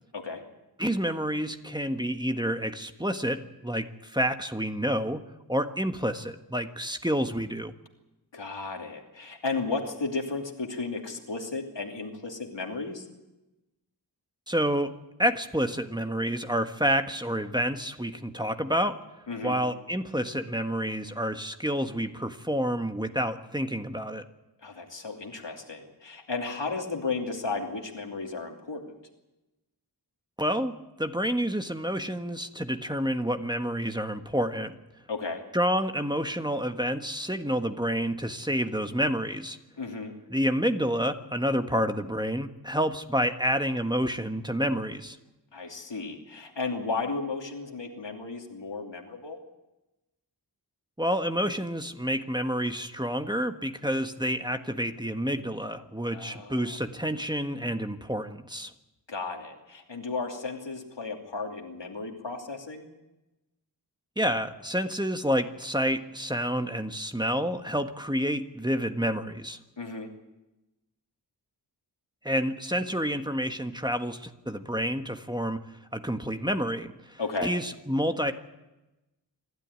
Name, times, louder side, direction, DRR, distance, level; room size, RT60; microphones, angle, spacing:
voice 1, 0.8-7.7 14.5-19.0 19.4-24.2 30.4-34.7 35.5-39.6 40.3-45.2 51.0-58.7 64.2-69.6 72.2-78.3, equal, 10° right, 7 dB, 1.5 m, -29 dB
voice 2, 8.3-13.1 19.3-19.6 24.6-28.9 35.1-35.4 39.8-40.1 45.5-49.4 56.1-56.8 59.1-62.9 69.8-70.1 77.2-77.5, left 4 dB, 85° left, 2 dB, 2.9 m, -34 dB
26.5 x 12.5 x 9.7 m, 1.0 s
wide cardioid pair, 45°, 43 cm